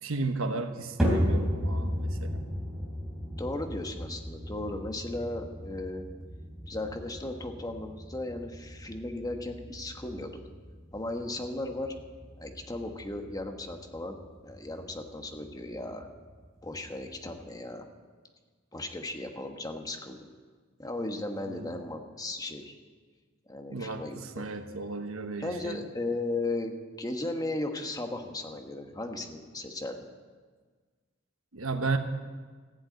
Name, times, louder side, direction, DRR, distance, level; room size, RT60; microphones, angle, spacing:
voice 1, 0.0-2.4 21.5-21.8 23.7-25.9 31.5-32.0, right 3 dB, 80° right, 7 dB, 1.1 m, -34 dB
sound 1, 1.0-17.4, equal, ahead, 3.6 m, -35 dB
voice 2, 3.4-6.1 6.7-10.4 10.9-11.9 12.4-14.2 14.4-16.1 16.6-17.9 18.7-20.3 20.8-22.7 23.5-24.4 25.4-30.0, left 2 dB, 20° left, 4 dB, 1.2 m, -36 dB
15.0 x 8.0 x 9.0 m, 1.5 s
head